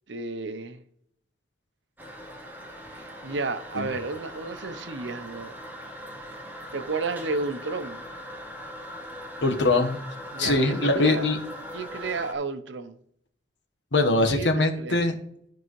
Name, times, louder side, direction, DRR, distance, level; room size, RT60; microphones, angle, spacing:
voice 1, 0.1-0.8 2.9-5.5 6.7-8.1 10.3-11.3 11.7-13.0 14.3-15.0, right 3 dB, 80° right, 0.8 m, -32 dB
Toilet flush, 2.0-12.3, equal, 10° right, 1.0 m, -40 dB
voice 2, 9.4-10.0 10.4-11.4 13.9-15.1, left 2 dB, 80° left, 1.3 m, -22 dB
13.5 x 4.7 x 3.2 m
head